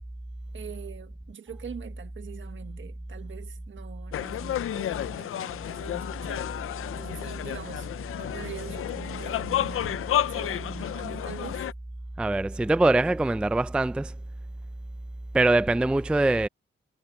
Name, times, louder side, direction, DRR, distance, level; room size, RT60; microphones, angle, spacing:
voice 1, 0.5-6.5 6.9-7.9 8.2-11.7, right 8 dB, 65° right, 1.4 m, -43 dB
sound 1, 4.1-11.7, left 11 dB, 85° left, 0.5 m, -31 dB
voice 2, 12.2-14.1 15.3-16.5, right 2 dB, 5° right, 0.3 m, -23 dB
wide cardioid pair, 125°, 21 cm